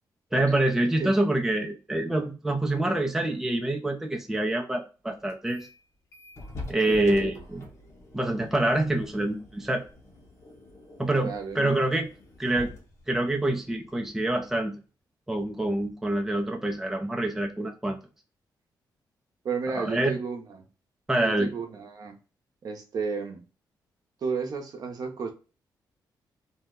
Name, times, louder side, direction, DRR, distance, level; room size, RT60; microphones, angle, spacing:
voice 1, 0.3-5.7 6.7-7.6 8.1-9.8 11.0-12.1 12.4-12.7 13.1-14.8 15.3-18.0 19.7-20.1 21.1-21.5, right 1 dB, 5° right, 1 dB, 0.5 m, -26 dB
sound 1, 5.3-5.8 6.1-14.6, left 2 dB, 40° left, 1.1 m, -46 dB
voice 2, 6.9-7.4 11.2-11.8 19.4-20.7 21.2-22.2 22.6-23.4 24.2-25.3, right 5 dB, 55° right, 4 dB, 0.7 m, -33 dB
2.7 x 2.1 x 3.6 m, 0.34 s
cardioid pair, 110°, 8 cm